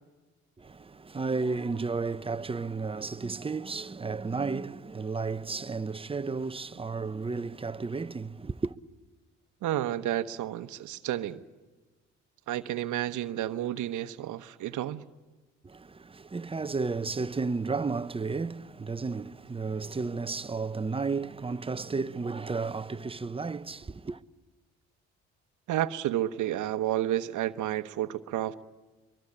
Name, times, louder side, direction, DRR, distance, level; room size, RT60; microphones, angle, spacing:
voice 1, 0.6-8.8 15.6-24.2, right 4 dB, 15° right, 0.7 m, -33 dB
voice 2, 9.6-11.4 12.5-15.0 25.7-28.6, right 13 dB, 70° right, 1.0 m, -31 dB
23.5 x 23.0 x 8.7 m
supercardioid pair, 70°, 31 cm